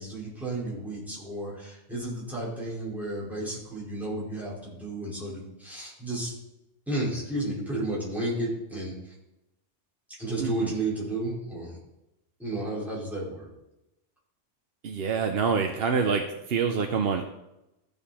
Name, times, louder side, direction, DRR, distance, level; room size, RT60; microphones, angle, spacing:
voice 1, 0.0-6.3 6.9-9.1 10.2-11.8 12.4-13.5, right 1 dB, ahead, -7 dB, 4.7 m, -32 dB
voice 2, 10.4-10.7 14.8-17.3, right 5 dB, 60° right, 4 dB, 0.9 m, -26 dB
14.5 x 6.9 x 4.3 m, 0.91 s
omnidirectional pair, 1.2 m